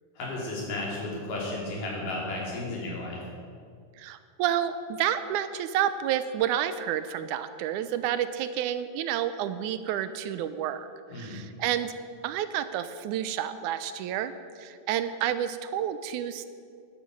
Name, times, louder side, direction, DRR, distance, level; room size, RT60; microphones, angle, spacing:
voice 1, 0.2-3.2 11.1-11.4, left 2 dB, 85° left, -4 dB, 4.6 m, -33 dB
voice 2, 4.0-10.9 11.1-11.9 12.2-14.3 14.6-16.5, right 10 dB, 80° right, 12 dB, 2.0 m, -30 dB
13.0 x 11.0 x 5.3 m, 2.3 s
omnidirectional pair, 3.6 m